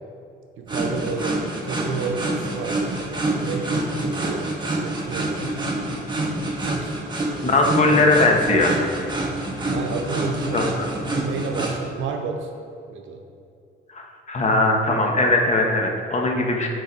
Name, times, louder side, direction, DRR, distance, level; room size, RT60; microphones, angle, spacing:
voice 1, 0.6-3.1 3.4-4.5 4.8-5.5 6.6-6.9 7.4-8.0 9.7-10.8 11.2-12.5 12.9-13.2, right 5 dB, 80° right, 3 dB, 0.8 m, -31 dB
sound 1, 0.7-11.7, right 2 dB, 20° right, 1.3 m, -27 dB
voice 2, 7.4-8.8 10.5-10.9 13.9-16.7, left 2 dB, 35° left, 1 dB, 1.0 m, -20 dB
6.4 x 4.6 x 4.5 m, 2.5 s
cardioid pair, 90°, 20 cm